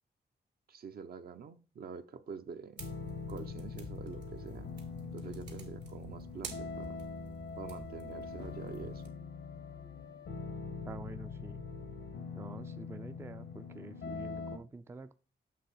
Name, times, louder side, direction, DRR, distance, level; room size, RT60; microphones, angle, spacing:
voice 1, 0.7-2.8 3.3-4.7 5.1-7.0 7.6-9.2, right 6 dB, 60° right, 0.7 m, -46 dB
sound 1, 2.8-14.6, left 5 dB, 90° left, 1.1 m, -43 dB
sound 2, 2.8-9.1, right 4 dB, 75° right, 2.0 m, -50 dB
voice 2, 10.9-11.6 12.3-15.1, right 3 dB, 15° right, 0.4 m, -48 dB
7.6 x 3.3 x 5.7 m
cardioid pair, 105°, 18 cm